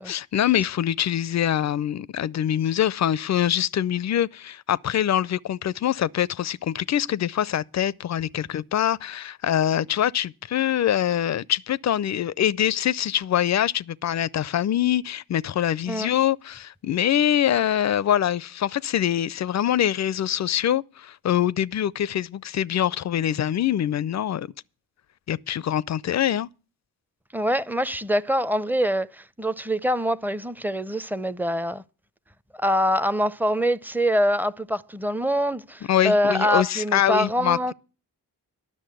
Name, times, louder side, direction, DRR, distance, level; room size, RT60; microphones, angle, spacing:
voice 1, 0.0-24.5 25.3-26.5 35.9-37.7, left 10 dB, 45° left, 0.5 m, -24 dB
voice 2, 27.3-31.8 32.5-37.7, equal, 5° right, 0.6 m, -24 dB
11.0 x 6.2 x 9.0 m
supercardioid pair, 40°, 41 cm